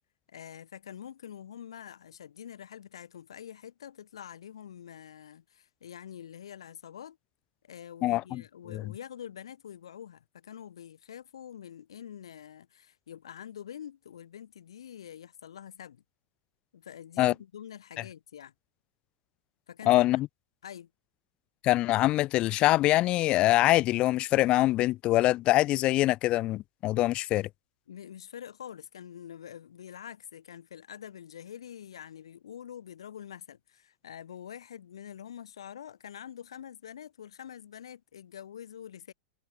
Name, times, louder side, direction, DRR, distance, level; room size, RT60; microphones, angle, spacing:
voice 1, 0.3-7.2 7.6-16.0 16.7-18.5 19.7-20.1 20.6-20.9 27.9-39.1, left 9 dB, 70° left, 5.3 m, -45 dB
voice 2, 8.0-8.4 8.7-8.8 17.2-17.3 19.9-20.3 21.6-27.5, left 16 dB, 35° left, 0.4 m, -24 dB
figure-of-eight pair, 90°, 3 cm